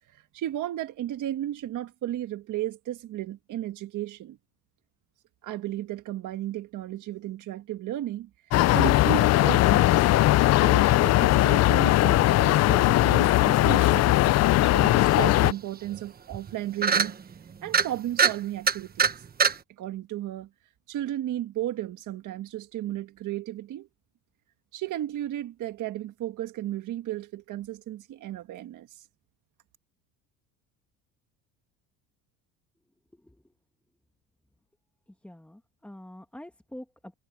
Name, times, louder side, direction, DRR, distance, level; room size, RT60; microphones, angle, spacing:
voice 1, 0.1-4.4 5.4-8.3 8.7-10.1 10.5-14.2 14.6-17.1 17.6-19.1 19.8-20.5 20.9-23.9 24.7-29.0, right 13 dB, 55° right, 1.6 m, -34 dB
sound 1, 8.5-15.5, left 16 dB, 45° left, 0.4 m, -20 dB
sound 2, 15.5-15.6 15.9-16.0 16.3-16.5 16.8-17.1 17.7-17.9 18.2-18.3 18.7-19.1 19.4-19.5, right 6 dB, 25° right, 1.2 m, -22 dB
voice 2, 35.2-37.1, left 1 dB, 5° left, 2.0 m, -45 dB
cardioid pair, 130°, 36 cm